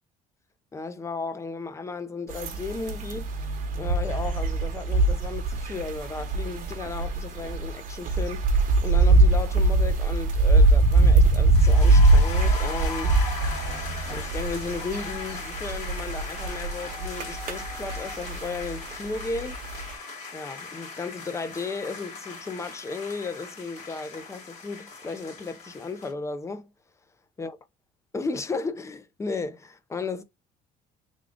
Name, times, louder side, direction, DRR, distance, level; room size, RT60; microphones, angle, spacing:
voice 1, 0.7-3.3 3.7-13.2 14.1-19.6 20.3-26.7 27.4-27.6 28.1-30.2, left 4 dB, 20° left, 0.5 m, -34 dB
sound 1, 2.3-19.9, right 2 dB, 55° right, 1.0 m, -22 dB
sound 2, 11.5-26.1, left 4 dB, 45° left, 1.9 m, -39 dB
3.5 x 2.4 x 3.6 m
cardioid pair, 125°, 16 cm